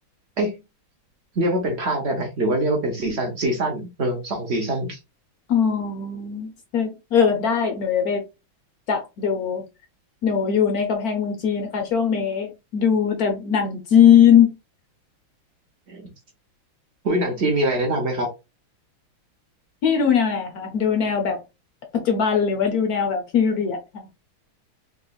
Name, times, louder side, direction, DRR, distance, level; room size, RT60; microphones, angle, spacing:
voice 1, 1.3-5.0 15.9-16.1 17.0-18.3, right 1 dB, 50° right, 0.8 m, -24 dB
voice 2, 5.5-8.2 8.9-9.6 10.2-14.6 19.8-21.4 21.9-24.1, left 8 dB, 70° left, 0.8 m, -20 dB
3.8 x 3.0 x 2.3 m
omnidirectional pair, 2.2 m